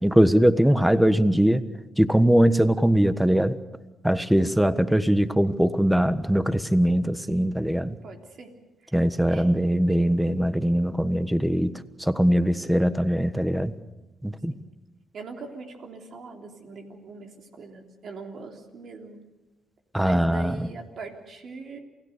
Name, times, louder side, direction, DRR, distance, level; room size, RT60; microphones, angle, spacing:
voice 1, 0.0-1.6 2.0-3.5 4.0-8.0 8.9-11.7 12.0-13.7 14.2-14.5 19.9-20.7, equal, 5° right, 13 dB, 1.4 m, -21 dB
voice 2, 8.0-8.5 8.8-8.9 9.3-9.5 14.5-14.7 15.1-19.2 20.0-21.8, right 4 dB, 65° right, 3 dB, 3.5 m, -41 dB
28.5 x 17.0 x 6.8 m, 1.1 s
supercardioid pair, 55°, 0 cm